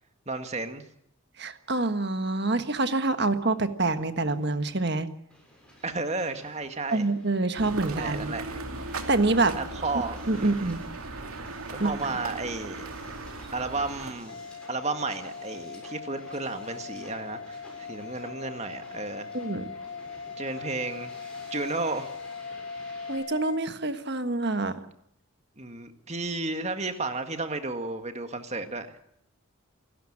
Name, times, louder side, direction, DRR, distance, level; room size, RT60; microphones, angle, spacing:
voice 1, 0.3-0.9 5.8-7.1 7.8-8.6 9.5-10.7 11.7-12.9 13.5-14.4 14.7-19.3 20.4-22.1 25.6-28.9, right 3 dB, 30° right, 8 dB, 1.8 m, -33 dB
voice 2, 1.4-5.1 6.9-8.4 9.1-9.6 10.3-10.8 11.8-12.1 19.3-19.7 23.1-24.8, right 2 dB, 50° right, 10 dB, 1.5 m, -26 dB
Hiss, 5.3-23.2, equal, 5° left, 6.9 m, -52 dB
sound 1, 7.6-14.1, right 2 dB, 90° right, 2.7 m, -37 dB
sound 2, 14.3-23.6, left 5 dB, 60° left, 1.6 m, -40 dB
27.5 x 13.0 x 8.8 m, 0.75 s
head